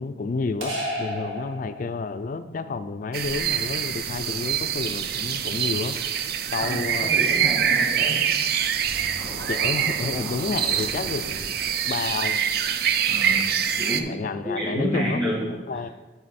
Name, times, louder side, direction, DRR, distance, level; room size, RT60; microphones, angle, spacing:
voice 1, 0.0-6.0 6.5-7.1 9.5-11.6 11.8-12.4 14.1-15.3 15.7-15.9, left 4 dB, 45° left, 11 dB, 0.3 m, -30 dB
sound 1, 0.6-2.3, equal, 85° right, 1.9 m, -32 dB
sound 2, 3.1-14.0, right 8 dB, 50° right, 0.4 m, -25 dB
voice 2, 6.6-8.2 13.0-13.5 13.8-14.2 14.4-15.8, equal, 25° right, -6 dB, 2.2 m, -29 dB
Scratching (performance technique), 8.8-11.4, equal, 70° right, 1.7 m, -38 dB
7.5 x 6.2 x 4.1 m, 1.2 s
head